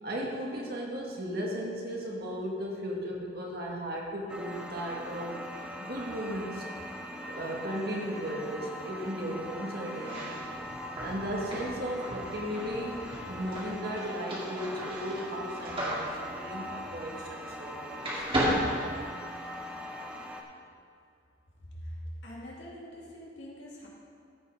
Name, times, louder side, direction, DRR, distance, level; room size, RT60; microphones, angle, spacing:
voice 1, 0.0-5.4 5.8-6.6 7.3-10.4 11.0-18.3, equal, 55° right, -2 dB, 1.8 m, -36 dB
sound 1, 4.3-20.4, equal, 5° right, 0.8 m, -41 dB
sound 2, 9.9-17.7 18.0-19.6, equal, 30° right, 2.0 m, -35 dB
voice 2, 22.2-23.9, equal, 70° left, -5 dB, 2.5 m, -44 dB
15.0 x 5.6 x 4.9 m, 2.4 s
head